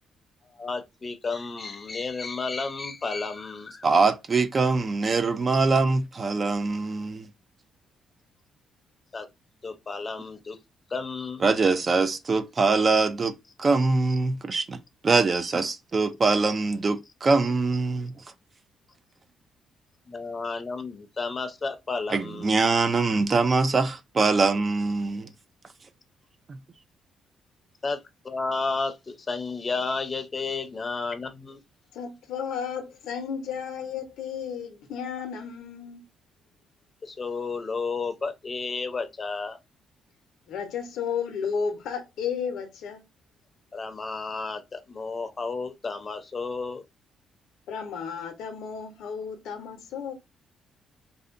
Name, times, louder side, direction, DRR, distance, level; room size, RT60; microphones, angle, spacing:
voice 1, 0.5-3.9 9.1-9.3 9.6-10.6 10.9-11.4 20.1-22.6 27.8-31.6 37.0-39.6 43.7-46.8, left 4 dB, 35° left, 0.6 m, -32 dB
voice 2, 3.8-7.3 11.4-18.1 22.1-25.3 26.5-26.6, right 3 dB, 35° right, 0.4 m, -23 dB
voice 3, 31.9-36.1 40.5-43.0 47.7-50.1, left 6 dB, 80° left, 0.6 m, -33 dB
2.6 x 2.1 x 2.5 m
cardioid pair, 90°, 0 cm